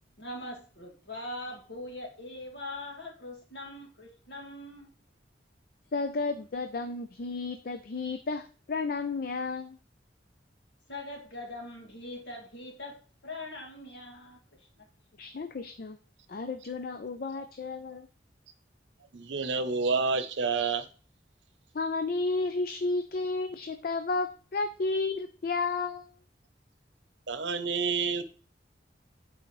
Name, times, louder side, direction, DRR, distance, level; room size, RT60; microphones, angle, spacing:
voice 1, 0.2-4.9 10.9-12.9 13.2-14.9, left 1 dB, 70° left, 0 dB, 2.2 m, -42 dB
voice 2, 5.9-9.8 15.2-16.0 16.3-18.1 21.7-26.1, left 3 dB, 55° left, 8 dB, 0.5 m, -32 dB
voice 3, 19.1-20.9 27.3-28.2, right 4 dB, 85° right, 11 dB, 0.7 m, -28 dB
8.5 x 4.8 x 3.2 m, 0.38 s
head